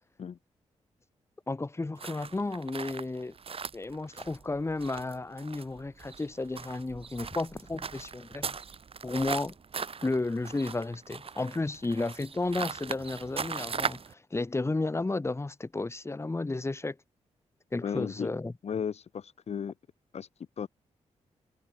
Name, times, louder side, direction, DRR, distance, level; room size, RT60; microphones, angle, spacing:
voice 1, 1.5-3.3 3.7-8.6 9.0-9.5 10.0-17.0 17.7-18.5, left 2 dB, 20° left, 2.4 m, -33 dB
sound 1, 2.0-14.1, right 5 dB, 50° right, 3.7 m, -39 dB
voice 2, 17.8-18.3 18.6-19.7 20.1-20.3 20.6-20.7, left 7 dB, 60° left, 1.6 m, -34 dB
cardioid pair, 80°, 12 cm